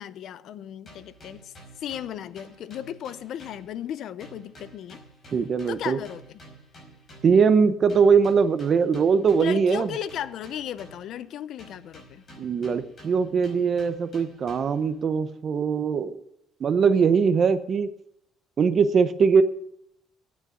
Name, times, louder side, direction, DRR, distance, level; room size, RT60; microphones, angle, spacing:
voice 1, 0.0-5.0 5.7-6.2 9.4-12.2, left 10 dB, 55° left, 0.6 m, -36 dB
sound 1, 0.9-3.9 4.2-7.5 7.9-11.2 11.6-14.9, right 1 dB, 30° left, 5.2 m, -50 dB
voice 2, 5.3-6.0 7.2-9.9 12.4-16.2 16.6-17.9 18.6-19.4, right 6 dB, 35° right, 0.8 m, -21 dB
9.5 x 8.8 x 8.5 m
cardioid pair, 165°, 0 cm